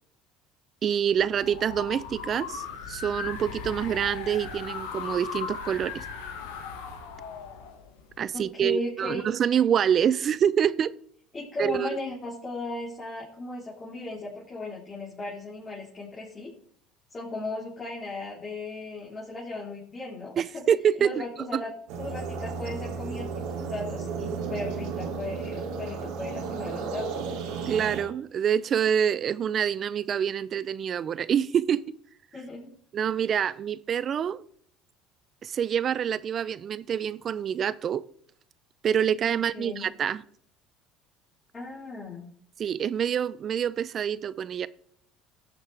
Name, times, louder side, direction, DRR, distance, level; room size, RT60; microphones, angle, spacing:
voice 1, 0.8-6.0 8.2-10.9 11.6-12.0 20.4-21.2 21.5-21.6 27.7-31.8 32.9-34.4 35.4-38.0 38.8-40.2 42.6-44.7, right 8 dB, 45° right, 0.5 m, -26 dB
sound 1, 1.1-8.3, left 6 dB, 80° left, 1.7 m, -38 dB
voice 2, 8.3-9.2 11.3-16.5 17.1-20.3 21.0-21.7 22.0-27.2 32.3-32.7 39.3-39.9 41.5-42.3, left 2 dB, 30° left, 3.8 m, -36 dB
sound 2, 21.9-28.0, right 5 dB, 70° right, 2.7 m, -34 dB
17.5 x 7.4 x 3.5 m
hypercardioid pair, 75°, 0 cm